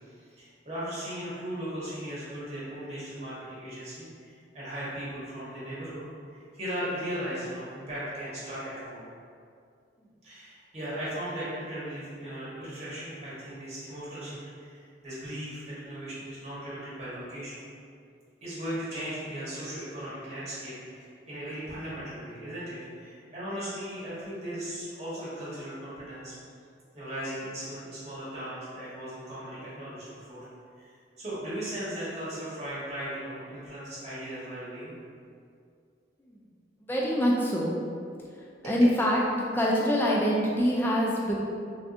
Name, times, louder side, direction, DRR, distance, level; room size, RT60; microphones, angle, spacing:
voice 1, 0.3-6.0 6.3-9.1 10.2-17.6 18.4-26.3 26.9-30.5 30.7-30.9 31.2-34.9 38.2-38.3 38.6-38.7, equal, 35° right, -10 dB, 1.1 m, -37 dB
voice 2, 36.8-37.7 38.6-39.2 39.5-41.4, equal, 10° left, -4 dB, 0.3 m, -25 dB
3.4 x 2.6 x 2.5 m, 2.3 s
head